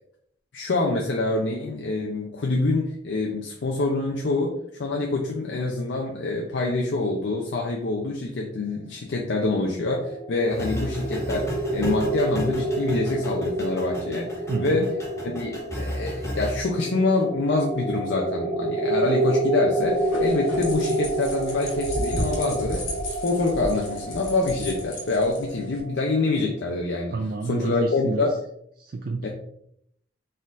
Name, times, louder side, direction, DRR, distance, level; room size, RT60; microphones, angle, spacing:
voice 1, 0.5-14.9 15.2-27.1 27.4-28.3 29.2-29.3, left 2 dB, 60° left, 0 dB, 0.5 m, -26 dB
sound 1, 9.6-26.4, right 1 dB, 90° right, 1.3 m, -29 dB
sound 2, 10.5-16.6, equal, 15° left, 0.9 m, -33 dB
voice 2, 14.5-14.9 27.1-28.3 28.8-29.3, right 3 dB, 45° right, 3 dB, 0.3 m, -29 dB
sound 3, 19.8-25.8, left 1 dB, 85° left, 1.3 m, -34 dB
4.2 x 3.8 x 2.5 m, 0.71 s
head